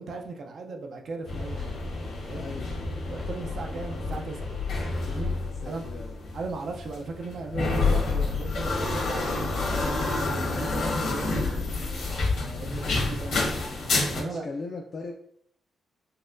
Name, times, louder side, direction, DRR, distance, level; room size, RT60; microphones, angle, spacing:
voice 1, 0.0-1.8 2.2-2.5 3.1-4.5 5.1-5.4 5.7-5.9 6.3-11.4 12.0-13.4 14.1-14.4, right 3 dB, 55° right, 3 dB, 0.4 m, -37 dB
sound 1, 1.3-14.2, left 3 dB, 70° left, 1.0 m, -29 dB
voice 2, 2.3-2.7 5.4-6.2 12.4-12.7 14.1-15.1, left 3 dB, 40° left, 1 dB, 0.4 m, -39 dB
4.1 x 2.2 x 2.5 m, 0.67 s
wide cardioid pair, 145°, 0 cm